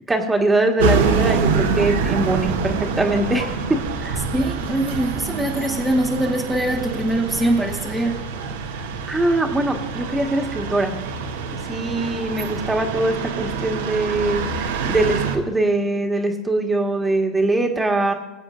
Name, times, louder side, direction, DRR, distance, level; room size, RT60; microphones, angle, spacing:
voice 1, 0.1-4.2 9.1-10.9 11.5-18.1, right 2 dB, 15° right, 3 dB, 1.6 m, -22 dB
sound 1, 0.8-15.4, right 5 dB, 80° right, 1.3 m, -26 dB
voice 2, 4.3-8.2, right 1 dB, 5° left, -1 dB, 1.2 m, -22 dB
20.5 x 8.0 x 2.6 m, 1.1 s
hypercardioid pair, 95°, 0 cm